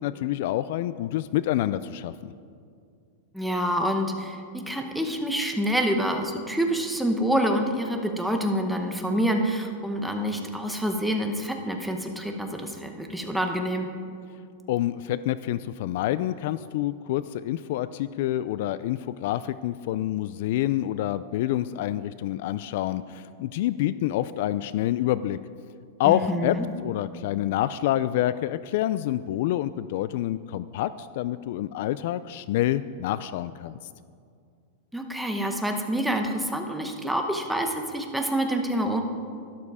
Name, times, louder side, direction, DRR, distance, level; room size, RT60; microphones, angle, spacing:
voice 1, 0.0-2.3 14.7-25.4 26.0-33.8, left 13 dB, 55° left, 15 dB, 0.3 m, -27 dB
voice 2, 3.3-13.9 26.0-26.7 34.9-39.0, equal, ahead, 3 dB, 1.0 m, -27 dB
12.0 x 12.0 x 4.9 m, 2.3 s
supercardioid pair, 160°, 0 cm